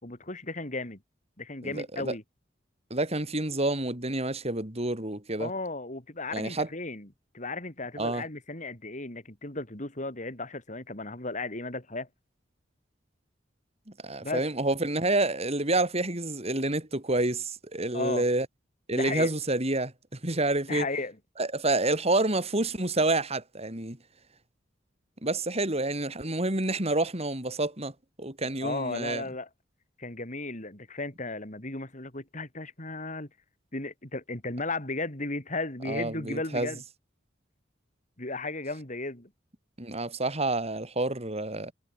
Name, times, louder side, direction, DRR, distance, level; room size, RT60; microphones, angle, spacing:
voice 1, 0.0-1.0 1.4-2.2 5.4-7.1 7.3-12.1 14.2-14.4 17.9-18.3 18.9-19.3 20.7-21.2 28.6-29.5 30.0-33.3 33.7-36.8 38.2-39.3, left 2 dB, 40° left, 4.5 m, -35 dB
voice 2, 1.6-2.1 2.9-5.5 6.3-6.7 8.0-8.2 14.0-18.5 18.9-20.9 21.4-24.0 25.2-27.9 28.2-29.2 35.9-36.7 39.8-41.7, right 2 dB, 35° right, 4.0 m, -28 dB
head